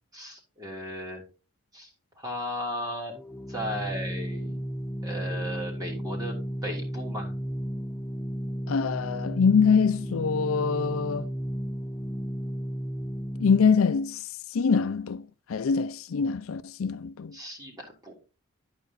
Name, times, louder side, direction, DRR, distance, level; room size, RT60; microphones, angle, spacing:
voice 1, 0.1-1.2 1.7-3.1 3.5-4.6 5.0-6.3 6.6-7.3 17.3-18.1, equal, 15° right, 3.1 m, -36 dB
Organ, 3.1-13.9, equal, 5° left, 0.6 m, -34 dB
voice 2, 8.7-11.3 13.4-14.2 14.5-15.2 15.5-17.3, left 5 dB, 75° left, 0.5 m, -24 dB
12.0 x 5.0 x 3.9 m
head